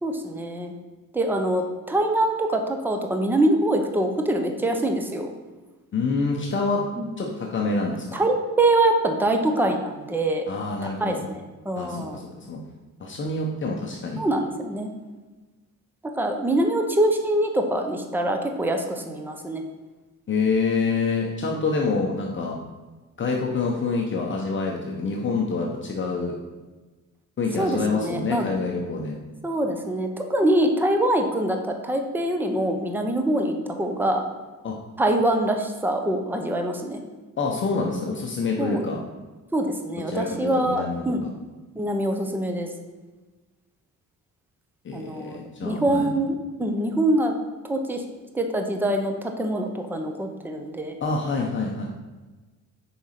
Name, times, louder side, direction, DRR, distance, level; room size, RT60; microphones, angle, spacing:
voice 1, 0.0-0.7 1.1-5.3 7.0-7.1 8.1-10.5 10.8-11.4 11.7-12.2 14.2-14.9 16.2-19.6 27.6-28.4 29.4-34.2 35.0-37.0 38.6-38.9 39.5-41.2 41.8-42.7 44.9-47.3 47.7-48.0 48.3-51.0, right 1 dB, 5° right, 4 dB, 0.7 m, -24 dB
voice 2, 5.9-6.8 7.2-8.2 10.5-11.2 11.8-12.6 13.0-14.2 20.3-22.6 23.2-26.3 27.4-29.2 34.6-34.7 37.4-39.0 40.1-41.3 44.8-46.1 51.0-51.9, left 4 dB, 40° left, -1 dB, 0.9 m, -26 dB
6.8 x 5.1 x 5.8 m, 1.2 s
wide cardioid pair, 160°, 31 cm